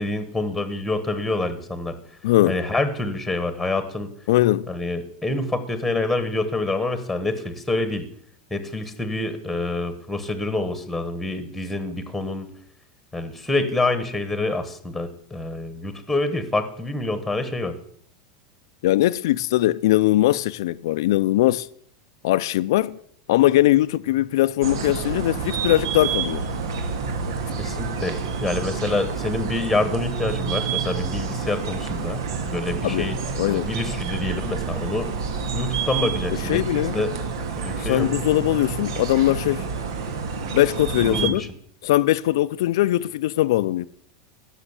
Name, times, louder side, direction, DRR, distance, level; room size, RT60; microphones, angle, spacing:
voice 1, 0.0-2.0 2.5-4.1 4.7-8.0 8.5-12.5 13.1-17.7 27.6-32.2 32.5-33.2 33.4-35.1 35.5-36.6 36.9-37.1 37.6-38.1 41.1-41.4, left 2 dB, ahead, 1.2 m, -26 dB
voice 2, 2.2-2.6 4.3-4.7 18.8-21.7 22.2-23.0 23.3-26.4 32.8-33.1 33.4-33.7 36.3-37.0 37.8-39.7 40.5-41.4 41.8-43.9, left 15 dB, 70° left, 0.5 m, -20 dB
sound 1, 24.6-41.3, right 5 dB, 85° right, 2.5 m, -28 dB
16.0 x 6.5 x 8.1 m
supercardioid pair, 175°, 2 cm